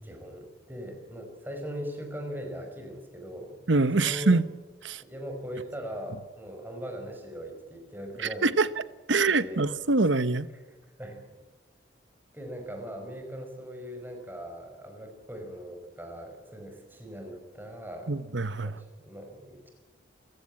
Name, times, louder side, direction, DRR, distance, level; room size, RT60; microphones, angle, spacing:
voice 1, 0.0-3.6 4.0-4.4 5.0-8.5 9.3-9.7 10.5-11.2 12.3-18.2 18.6-19.7, equal, 10° right, 5.6 m, -40 dB
voice 2, 3.7-4.5 4.8-5.0 8.4-8.7 9.1-10.5 18.1-18.7, right 3 dB, 85° right, 1.1 m, -24 dB
28.0 x 16.5 x 8.7 m
head